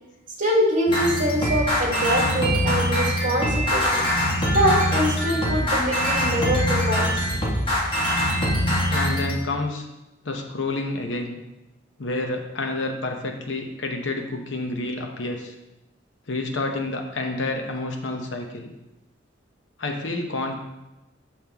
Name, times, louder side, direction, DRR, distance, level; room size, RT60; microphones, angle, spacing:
voice 1, 0.4-4.0 4.5-7.3, equal, 45° right, -1 dB, 1.6 m, -24 dB
sound 1, 0.9-9.3, equal, 25° left, 1.4 m, -23 dB
voice 2, 8.9-9.9 10.2-11.4 12.0-15.5 16.3-18.7 19.8-20.5, left 2 dB, 75° left, 3 dB, 0.9 m, -29 dB
6.3 x 5.8 x 3.5 m, 0.98 s
head